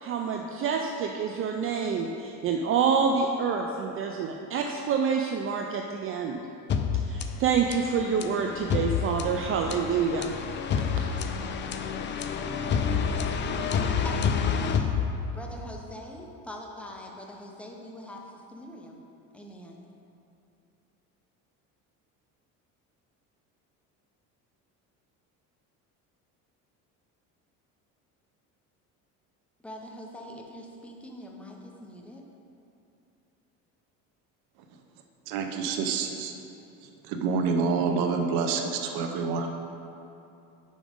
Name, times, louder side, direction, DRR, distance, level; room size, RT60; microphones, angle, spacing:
voice 1, 0.0-6.4 7.1-10.3, right 6 dB, 40° right, 2 dB, 0.4 m, -27 dB
sound 1, 6.7-15.6, left 6 dB, 35° left, 0.4 m, -29 dB
voice 2, 14.0-15.0 15.3-19.0 19.3-19.9 29.6-32.3, left 1 dB, 5° left, 0 dB, 0.7 m, -43 dB
voice 3, 35.3-36.4 37.0-39.5, right 5 dB, 75° right, 4 dB, 0.7 m, -27 dB
5.4 x 4.9 x 5.0 m, 2.8 s
cardioid pair, 110°, 34 cm